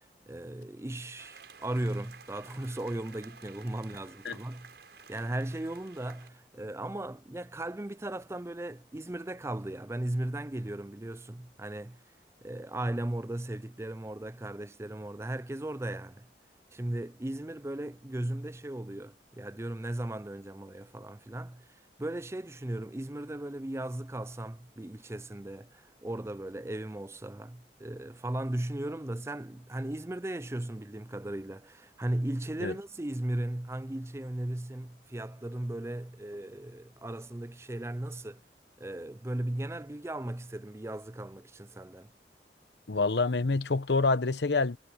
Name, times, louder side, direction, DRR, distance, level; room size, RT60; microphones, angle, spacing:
voice 1, 0.3-4.7 5.1-12.0 12.4-16.3 16.7-21.7 22.0-38.4 38.8-42.1, right 1 dB, 15° right, 0.5 m, -37 dB
sound 1, 1.2-6.3, right 6 dB, 75° right, 5.7 m, -53 dB
voice 2, 42.9-44.8, left 3 dB, 80° left, 0.9 m, -27 dB
head